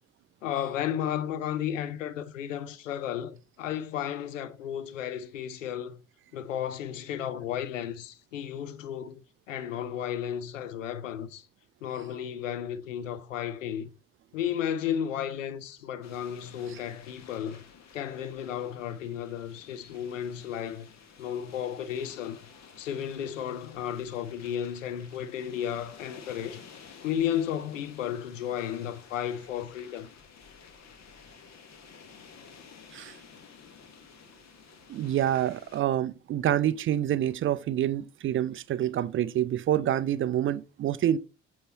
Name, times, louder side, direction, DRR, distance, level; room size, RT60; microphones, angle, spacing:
voice 1, 0.4-6.0 6.3-11.4 11.8-13.9 14.3-17.6 17.9-20.9 21.2-22.5 22.8-26.6 27.0-30.1, left 9 dB, 90° left, 0.5 m, -33 dB
sound 1, 16.0-35.8, left 6 dB, 45° left, 1.1 m, -52 dB
voice 2, 34.9-41.2, right 11 dB, 35° right, 0.4 m, -27 dB
7.8 x 2.9 x 4.2 m
hypercardioid pair, 50°, 37 cm